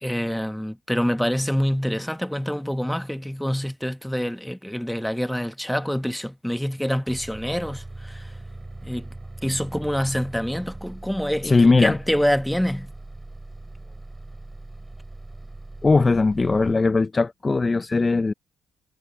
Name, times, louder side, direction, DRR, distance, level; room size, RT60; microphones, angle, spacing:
voice 1, 0.0-8.3 8.8-9.1 9.4-12.9, equal, ahead, 1.2 m, -26 dB
Bus, 7.1-16.7, right 2 dB, 15° right, 2.7 m, -40 dB
voice 2, 11.4-12.0 15.8-18.3, left 3 dB, 25° left, 0.4 m, -19 dB
cardioid pair, 90°, 0 cm